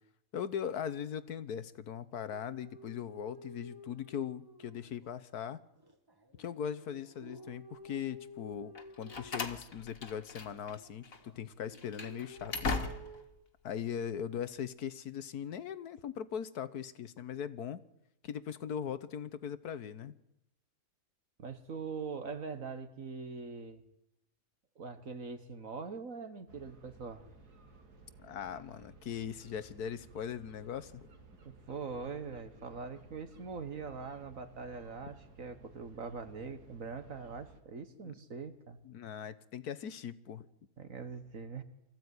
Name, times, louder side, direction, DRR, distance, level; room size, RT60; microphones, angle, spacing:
voice 1, 0.3-5.6 6.4-12.8 13.6-17.8 18.2-20.1 28.2-31.1 38.8-40.4, left 8 dB, 80° left, 15 dB, 1.6 m, -40 dB
sound 1, 2.3-5.2 5.8-10.0 10.4-11.4 11.7-13.2, left 1 dB, 15° right, 1.7 m, -52 dB
Slam, 8.7-10.8 11.0-11.2 11.7-13.3, left 4 dB, 60° left, 2.3 m, -39 dB
voice 2, 21.4-23.8 24.8-27.2 31.4-38.8 40.8-41.6, right 5 dB, 60° right, 9 dB, 1.9 m, -42 dB
sound 2, 26.5-37.6, right 4 dB, 80° right, 2.7 m, -57 dB
24.5 x 15.0 x 9.6 m, 0.91 s
omnidirectional pair, 1.6 m